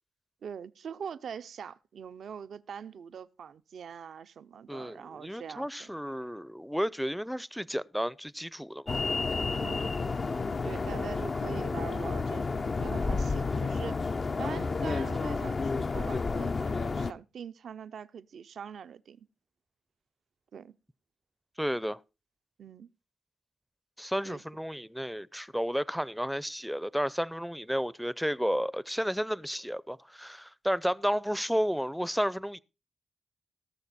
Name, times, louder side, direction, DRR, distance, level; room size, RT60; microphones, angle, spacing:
voice 1, 0.4-5.9 9.6-9.9 10.6-14.1 14.4-19.3 20.5-20.8 22.6-22.9 24.2-24.4, right 7 dB, 75° right, 0.5 m, -43 dB
voice 2, 4.7-9.0 21.6-22.0 24.0-32.6, equal, ahead, 0.5 m, -32 dB
sound 1, 8.9-17.1, left 4 dB, 50° left, 0.6 m, -31 dB
18.0 x 6.6 x 4.1 m
cardioid pair, 50°, 0 cm